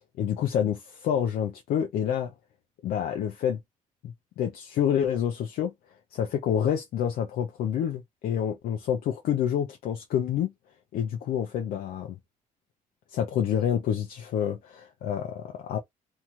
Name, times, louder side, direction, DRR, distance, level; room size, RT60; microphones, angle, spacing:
voice 1, 0.2-2.3 2.8-3.6 4.0-5.7 6.1-10.5 10.9-12.2 13.1-15.8, left 9 dB, 80° left, 0.6 m, -28 dB
2.8 x 2.3 x 3.0 m
cardioid pair, 95°, 15 cm